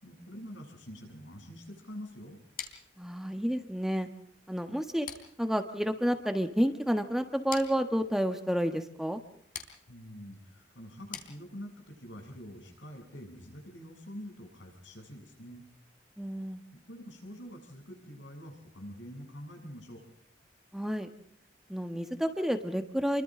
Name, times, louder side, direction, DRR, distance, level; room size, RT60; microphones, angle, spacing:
voice 1, 0.0-2.4 9.9-15.6 16.7-20.1, equal, 85° left, 2 dB, 7.8 m, -46 dB
sound 1, 2.6-11.9, left 8 dB, 50° left, 3.6 m, -48 dB
voice 2, 3.0-4.1 4.5-5.1 5.4-9.2 16.2-16.6 20.7-21.1 21.7-23.2, equal, ahead, 6 dB, 1.4 m, -30 dB
30.0 x 24.0 x 3.8 m, 0.66 s
head